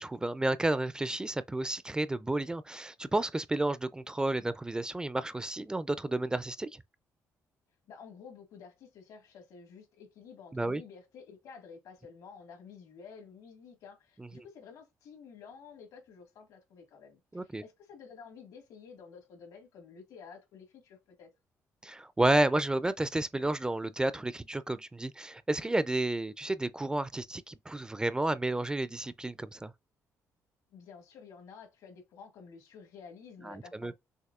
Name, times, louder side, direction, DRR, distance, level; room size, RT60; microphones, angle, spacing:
voice 1, 0.0-6.8 10.5-10.8 14.2-14.3 17.3-17.6 21.8-29.7 33.4-33.9, right 2 dB, 15° right, 0.3 m, -31 dB
voice 2, 7.9-21.3 30.7-33.9, left 6 dB, 80° left, 1.8 m, -51 dB
6.4 x 2.6 x 2.4 m
cardioid pair, 95°, 6 cm